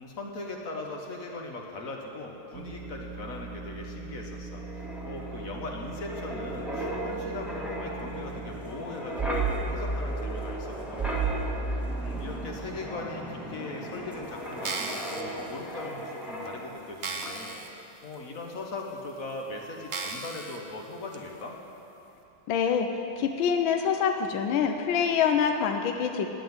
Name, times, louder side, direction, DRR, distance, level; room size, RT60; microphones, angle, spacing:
voice 1, 0.0-11.6 12.0-21.6, left 2 dB, 45° left, 1 dB, 1.3 m, -40 dB
sound 1, 2.5-9.0, right 3 dB, 85° right, 1.7 m, -41 dB
Wind, 4.5-16.9 17.2-17.5, right 2 dB, ahead, 1.2 m, -34 dB
sound 2, 14.5-15.2 15.9-16.0 16.5-16.6 17.0-17.7 18.1-18.2 19.0-19.1 19.9-20.6 21.1-21.2, right 4 dB, 65° right, 0.6 m, -35 dB
voice 2, 22.5-22.9 23.2-26.3, left 7 dB, 70° left, 5 dB, 1.4 m, -25 dB
9.2 x 9.1 x 9.4 m, 2.9 s
omnidirectional pair, 2.4 m